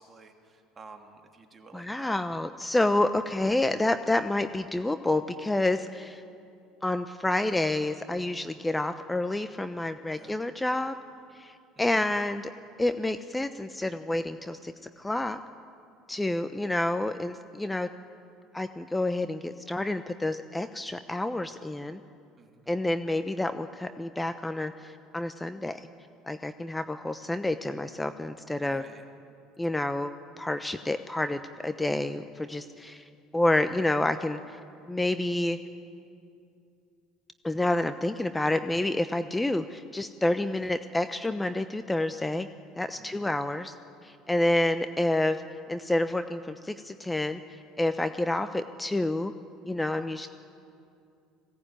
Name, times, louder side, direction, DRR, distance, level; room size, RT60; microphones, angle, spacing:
voice 1, 0.0-2.2 10.1-10.4 11.8-12.0 22.4-22.7 28.6-29.0 42.8-43.3, right 4 dB, 30° right, 3 dB, 3.1 m, -51 dB
voice 2, 1.7-6.2 6.8-11.0 11.4-12.5 12.8-15.4 16.1-17.9 18.5-22.0 22.7-25.8 26.3-28.8 29.6-33.0 33.3-34.6 34.9-35.6 37.4-42.5 42.8-43.7 44.0-45.4 45.7-47.4 47.8-49.3 49.6-50.3, left 1 dB, 10° left, 10 dB, 0.9 m, -29 dB
21.0 x 17.5 x 9.2 m, 2.5 s
hypercardioid pair, 70°, 0 cm